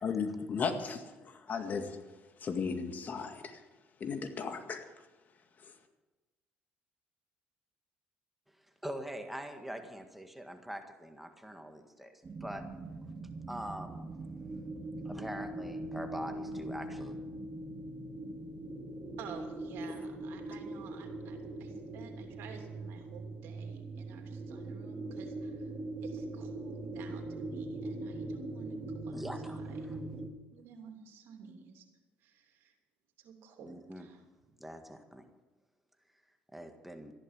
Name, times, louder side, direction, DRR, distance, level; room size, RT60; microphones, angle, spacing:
voice 1, 0.0-2.0 2.4-3.6 4.0-4.9 5.6-5.7, left 5 dB, 45° left, 7 dB, 1.9 m, -35 dB
voice 2, 8.8-12.6 13.5-14.2 15.1-17.2 29.1-30.0 33.6-34.1 34.6-35.2 36.5-37.1, equal, 5° right, 6 dB, 1.8 m, -43 dB
sound 1, 12.2-30.3, right 2 dB, 30° right, 2.3 m, -41 dB
voice 3, 19.2-25.7 26.0-29.6 30.5-31.8 32.2-32.7 33.2-34.2, right 6 dB, 75° right, 3 dB, 3.0 m, -52 dB
14.5 x 11.0 x 7.5 m, 1.2 s
supercardioid pair, 85°, 4 cm